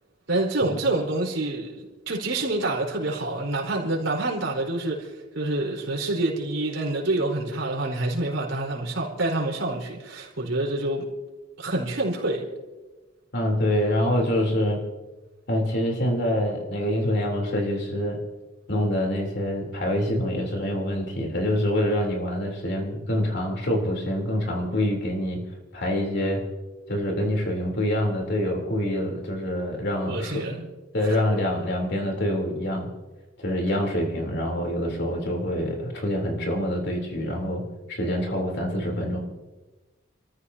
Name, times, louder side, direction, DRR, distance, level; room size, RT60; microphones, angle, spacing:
voice 1, 0.3-11.1 11.6-12.5 30.1-30.7 31.0-31.2, right 2 dB, 75° right, 4.5 m, -27 dB
voice 2, 13.3-14.8 15.5-18.2 18.7-25.4 25.7-26.4 26.9-30.4 30.9-32.9 33.4-37.6 37.9-39.2, left 1 dB, 60° left, 3.6 m, -26 dB
28.5 x 14.5 x 2.9 m
head